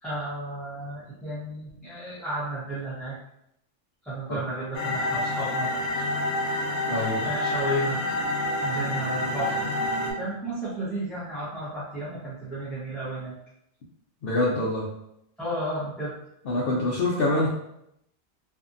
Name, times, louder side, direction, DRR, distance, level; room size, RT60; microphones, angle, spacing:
voice 1, 0.0-3.1 4.0-6.1 7.2-8.0 8.3-9.6 10.2-13.4 15.4-16.1, right 1 dB, ahead, -12 dB, 0.6 m, -33 dB
sound 1, 4.7-10.1, left 1 dB, 85° left, 1.0 m, -28 dB
voice 2, 6.9-7.3 14.2-14.9 16.5-17.5, left 2 dB, 60° left, -5 dB, 0.7 m, -25 dB
2.6 x 2.5 x 2.5 m, 0.78 s
omnidirectional pair, 1.2 m